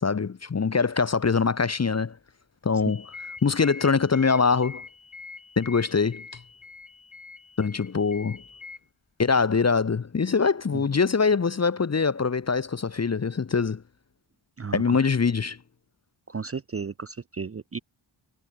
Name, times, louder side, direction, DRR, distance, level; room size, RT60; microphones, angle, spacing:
voice 1, 0.0-2.2 2.6-3.0 3.4-4.8 5.6-6.2 7.6-8.4 9.2-13.8 14.7-15.6, left 5 dB, 30° left, 0.6 m, -23 dB
sound 1, 2.9-8.8, left 4 dB, 65° left, 6.2 m, -44 dB
voice 2, 14.6-15.0 16.3-17.8, right 5 dB, 30° right, 0.5 m, -34 dB
wide cardioid pair, 55°, 50 cm